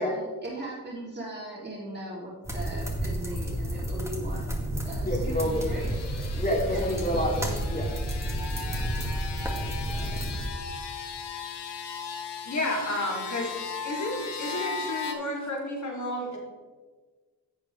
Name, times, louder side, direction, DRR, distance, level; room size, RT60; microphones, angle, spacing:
voice 1, 0.0-5.9 6.7-6.9 8.7-8.8 9.8-10.4, right 1 dB, 25° right, -5 dB, 2.9 m, -39 dB
sound 1, 2.4-10.5, right 1 dB, 5° right, 1.9 m, -31 dB
voice 2, 5.0-5.7 6.3-7.9, equal, 20° left, -2 dB, 2.7 m, -28 dB
sound 2, 5.2-15.1, left 5 dB, 80° left, 1.2 m, -38 dB
voice 3, 12.4-13.5 13.8-16.4, left 1 dB, 45° left, -2 dB, 2.8 m, -31 dB
11.0 x 7.2 x 3.3 m, 1.4 s
cardioid pair, 60°, 40 cm